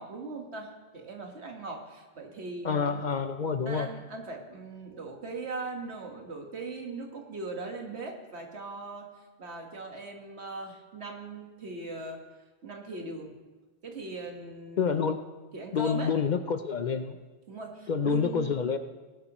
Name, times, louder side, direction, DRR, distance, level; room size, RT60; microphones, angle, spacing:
voice 1, 0.0-3.0 3.7-9.1 9.4-12.2 12.6-13.3 13.8-14.9 15.5-16.1 17.5-18.6, right 3 dB, 80° right, 2 dB, 1.8 m, -39 dB
voice 2, 2.6-3.9 14.8-15.3 15.7-17.2 17.9-18.8, left 6 dB, 55° left, 9 dB, 0.6 m, -28 dB
19.0 x 11.5 x 3.0 m, 1.3 s
omnidirectional pair, 1.1 m